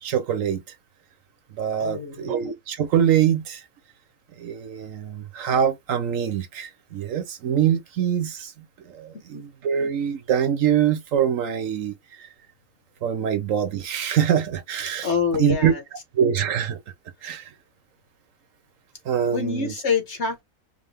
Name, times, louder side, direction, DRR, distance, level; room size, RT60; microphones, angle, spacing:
voice 1, 0.0-0.6 1.5-3.6 4.4-12.3 13.0-15.7 16.1-16.8 17.2-17.5 19.1-19.7, right 9 dB, 70° right, 1.1 m, -24 dB
voice 2, 1.8-2.3 9.3-9.4 15.0-15.8 19.3-20.4, left 5 dB, 55° left, 1.6 m, -26 dB
5.0 x 2.2 x 3.4 m
omnidirectional pair, 1.5 m